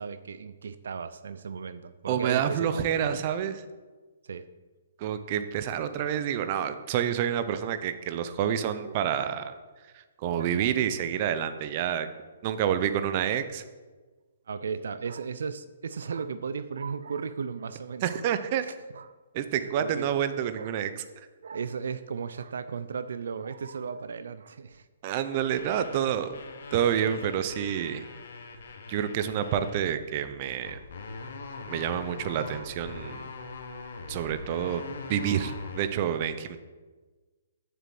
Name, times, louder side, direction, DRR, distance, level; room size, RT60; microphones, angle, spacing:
voice 1, 0.0-3.2 4.2-4.5 7.8-8.0 8.8-9.6 10.4-10.7 14.5-18.2 18.6-19.1 19.6-20.1 20.5-20.8 21.4-24.9 25.2-25.3, right 5 dB, 75° right, 12 dB, 0.6 m, -36 dB
voice 2, 2.1-3.6 5.0-9.5 9.9-12.1 12.4-13.6 18.0-18.6 19.3-21.0 25.0-26.4 26.7-28.0 28.9-30.8 31.7-33.3 34.1-34.8 35.1-36.6, right 9 dB, 35° right, 10 dB, 0.7 m, -28 dB
sound 1, 25.4-29.8 30.6-35.8, left 4 dB, 65° left, 1.5 m, -42 dB
7.3 x 7.0 x 7.8 m, 1.3 s
hypercardioid pair, 160°, 0 cm